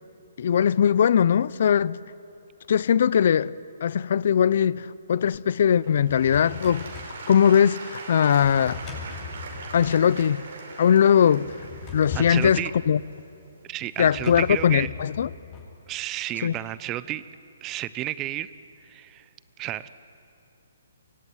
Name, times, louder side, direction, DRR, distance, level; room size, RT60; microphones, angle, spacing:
voice 1, 0.4-2.0 2.7-3.5 3.8-6.8 7.3-8.8 9.7-10.4 10.8-11.6 11.9-13.0 14.0-15.3 16.4-16.5, left 8 dB, 60° left, 0.6 m, -20 dB
Applause / Crowd, 5.6-14.5 15.1-15.2, right 3 dB, 65° right, 5.8 m, -41 dB
Drawer open or close, 6.1-7.2 8.4-10.0 11.4-12.7 14.0-15.7, left 5 dB, 25° left, 7.1 m, -39 dB
voice 2, 12.1-12.7 13.7-14.9 15.9-17.2 17.6-18.5 18.9-19.3 19.6-19.9, right 14 dB, 25° right, 0.8 m, -31 dB
24.5 x 23.5 x 9.6 m
hypercardioid pair, 145°, 0 cm